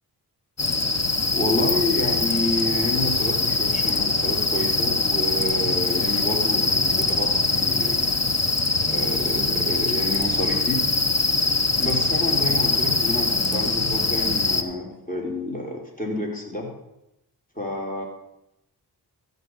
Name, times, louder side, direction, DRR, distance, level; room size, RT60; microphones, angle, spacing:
sound 1, 0.6-14.6, left 3 dB, 40° left, 1.1 m, -23 dB
voice 1, 1.3-8.2 8.9-10.8 11.8-16.7 17.6-18.0, left 2 dB, 20° left, 0 dB, 3.9 m, -29 dB
sound 2, 8.8-11.4 12.8-15.3, right 5 dB, 20° right, 1.5 m, -42 dB
14.0 x 5.5 x 8.0 m, 0.85 s
cardioid pair, 50°, 41 cm